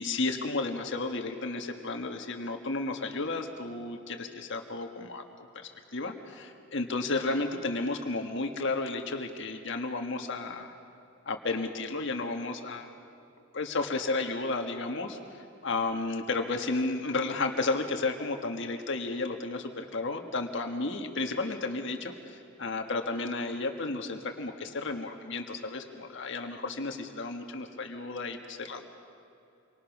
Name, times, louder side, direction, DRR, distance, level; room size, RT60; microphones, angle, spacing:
voice 1, 0.0-10.7 11.2-12.9 13.5-28.9, left 3 dB, 60° left, 4 dB, 1.6 m, -33 dB
28.5 x 24.5 x 6.1 m, 2.7 s
head